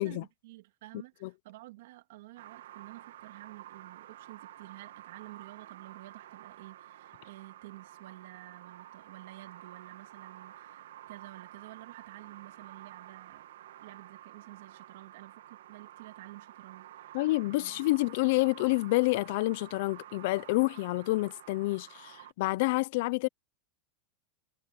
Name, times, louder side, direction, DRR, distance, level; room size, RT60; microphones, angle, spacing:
voice 1, 0.0-13.5 13.8-17.8, right 18 dB, 70° right, 3.1 m, -51 dB
sound 1, 2.4-22.3, right 13 dB, 85° right, 2.0 m, -51 dB
voice 2, 17.1-23.3, left 21 dB, 60° left, 0.6 m, -28 dB
supercardioid pair, 140°, 0 cm